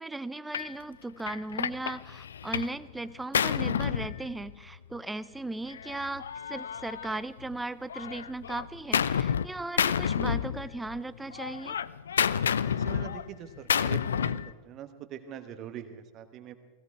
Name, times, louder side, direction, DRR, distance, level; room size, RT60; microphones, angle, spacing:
voice 1, 0.0-11.8, right 2 dB, 5° right, 16 dB, 0.5 m, -37 dB
Gunshot gunfire, 0.5-0.7 1.3-2.8 3.1-4.8 5.7-7.5 7.9-9.5 9.8-11.0 11.3-14.5, left 8 dB, 65° left, 0.4 m, -30 dB
voice 2, 12.6-14.4 14.6-16.6, right 9 dB, 35° right, 8 dB, 1.3 m, -43 dB
17.0 x 16.5 x 4.7 m, 1.3 s
figure-of-eight pair, 90°, 0 cm